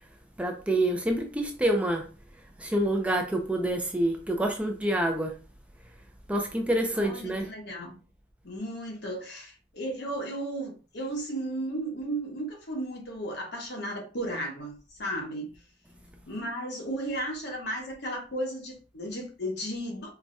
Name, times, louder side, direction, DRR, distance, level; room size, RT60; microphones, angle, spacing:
voice 1, 0.4-2.1 2.6-5.4 6.3-7.5, right 1 dB, 5° right, 0.4 m, -27 dB
voice 2, 6.9-8.0 8.4-15.5 16.3-20.1, right 1 dB, 65° left, 1.1 m, -34 dB
4.5 x 2.1 x 2.6 m
head